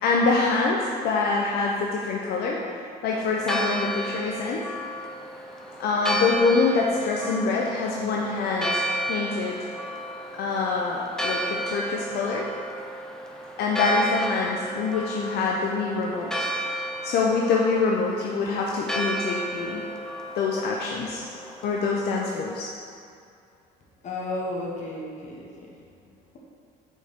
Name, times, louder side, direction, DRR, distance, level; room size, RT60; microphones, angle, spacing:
voice 1, 0.0-2.6 3.0-4.7 5.8-8.8 9.1-9.6 10.4-12.5 13.6-16.5 17.0-19.8 20.4-21.2 21.6-22.7, left 4 dB, 75° left, -2 dB, 0.6 m, -25 dB
Church bell, 3.1-22.5, right 1 dB, 5° left, 0.6 m, -33 dB
voice 2, 24.0-25.8, left 2 dB, 45° left, -3 dB, 1.2 m, -33 dB
6.1 x 4.3 x 3.6 m, 2.4 s
cardioid pair, 110°, 17 cm